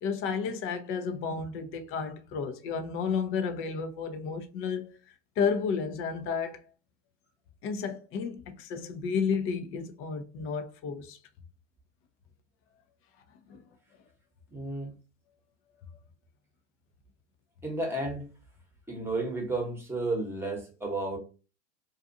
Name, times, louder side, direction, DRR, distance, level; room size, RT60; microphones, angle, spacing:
voice 1, 0.0-5.0 5.4-6.7 7.6-11.2 13.5-13.6, left 6 dB, 35° left, 0.6 m, -32 dB
voice 2, 14.5-14.9 17.6-18.3 18.9-21.2, right 2 dB, 5° right, 1.1 m, -32 dB
2.5 x 2.4 x 2.6 m
hypercardioid pair, 100°, 35 cm